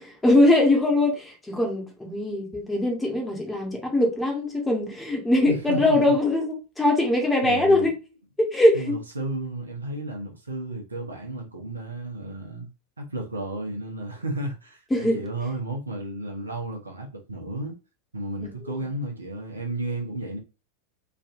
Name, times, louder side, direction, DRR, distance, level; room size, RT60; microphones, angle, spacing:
voice 1, 0.2-7.9 8.4-9.0 14.9-15.2 18.7-18.8, left 1 dB, 10° left, 1.1 m, -22 dB
voice 2, 5.5-6.0 7.4-7.9 8.7-12.7 13.0-17.8 18.1-20.4, right 2 dB, 75° right, 0.8 m, -33 dB
3.2 x 2.6 x 2.5 m
figure-of-eight pair, 90°, 0 cm